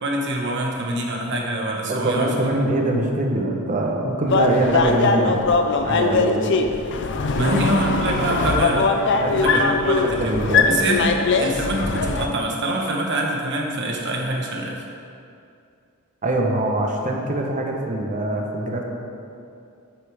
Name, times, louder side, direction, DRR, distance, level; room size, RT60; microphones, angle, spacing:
voice 1, 0.0-2.3 7.3-8.9 9.4-10.3 10.6-14.8, right 1 dB, 55° right, 0 dB, 1.2 m, -25 dB
voice 2, 1.9-5.4 5.8-6.4 7.4-7.6 8.3-8.6 9.1-10.8 16.2-18.8, right 1 dB, 35° right, 1 dB, 0.9 m, -23 dB
sound 1, 4.3-12.3, left 4 dB, 55° left, 0.5 m, -21 dB
8.2 x 8.1 x 3.5 m, 2.5 s
head